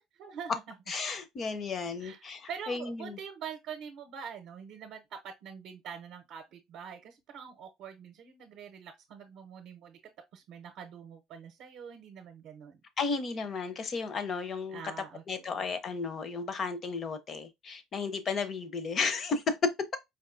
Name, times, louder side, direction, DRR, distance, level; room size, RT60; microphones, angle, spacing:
voice 1, 0.2-0.6 2.0-2.2 2.5-10.0 10.3-12.8 14.7-15.5, right 7 dB, 55° right, 0.7 m, -45 dB
voice 2, 0.9-3.2 13.0-14.9 15.3-20.0, left 4 dB, 30° left, 0.6 m, -33 dB
4.6 x 2.7 x 2.5 m
cardioid pair, 155°, 0 cm